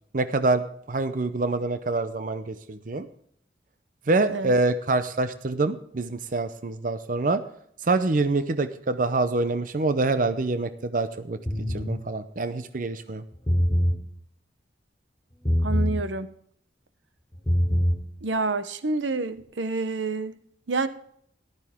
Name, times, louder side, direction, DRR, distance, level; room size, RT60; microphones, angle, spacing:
voice 1, 0.1-3.1 4.1-7.4 7.8-11.4 11.7-13.2, right 3 dB, 45° right, 0.6 m, -26 dB
sound 1, 11.5-11.9 13.3-14.0 15.4-16.0 17.3-18.0, equal, 15° left, 5.5 m, -23 dB
voice 2, 15.6-16.3 18.2-20.4 20.7-20.9, right 3 dB, 85° right, 0.9 m, -28 dB
14.0 x 12.0 x 3.6 m
head